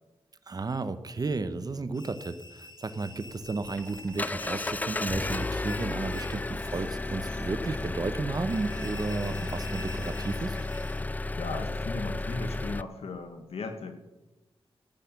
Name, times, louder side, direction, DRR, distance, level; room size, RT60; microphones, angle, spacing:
voice 1, 0.5-10.6, right 3 dB, 40° right, 12 dB, 0.9 m, -33 dB
sound 1, 1.9-11.0, left 2 dB, 45° left, 1.6 m, -49 dB
Engine, 3.3-12.8, left 2 dB, 15° left, 0.4 m, -33 dB
voice 2, 11.4-13.9, left 3 dB, 85° left, 6 dB, 1.7 m, -36 dB
14.0 x 9.1 x 6.0 m, 1.1 s
wide cardioid pair, 100°, 10 cm